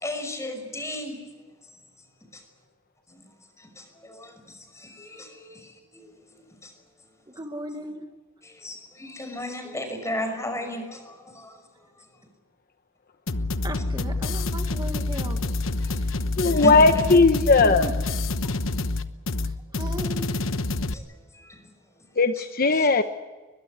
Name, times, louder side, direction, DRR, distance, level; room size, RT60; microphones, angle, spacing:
voice 1, 0.0-1.2 5.0-5.3 7.7-7.8 8.6-11.0 16.4-17.2 22.7-22.9, left 1 dB, 15° left, 6 dB, 5.9 m, -32 dB
voice 2, 7.3-8.0 13.6-15.4 15.8-16.2 17.6-17.9 19.4-20.4 22.7-22.9, right 1 dB, 20° right, 5 dB, 1.6 m, -37 dB
sound 1, 13.3-20.9, left 2 dB, 90° left, 1.1 m, -27 dB
voice 3, 16.4-17.9 22.2-23.0, left 3 dB, 50° left, 8 dB, 1.0 m, -18 dB
22.5 x 21.5 x 8.1 m, 1.3 s
head